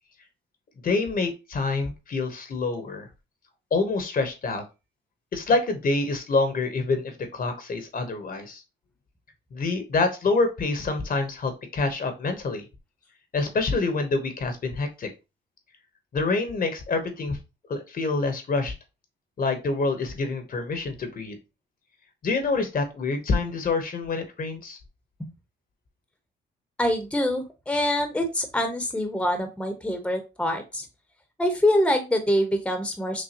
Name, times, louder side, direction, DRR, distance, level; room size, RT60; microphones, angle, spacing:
voice 1, 0.8-3.1 3.7-4.6 5.3-8.6 9.5-12.6 13.3-15.1 16.1-17.4 17.7-18.7 19.4-21.4 22.2-24.8, left 3 dB, 45° left, 7 dB, 1.0 m, -26 dB
voice 2, 26.8-30.8 31.4-33.2, left 1 dB, 5° left, 6 dB, 0.9 m, -25 dB
6.2 x 2.2 x 2.8 m, 0.27 s
cardioid pair, 90°, 20 cm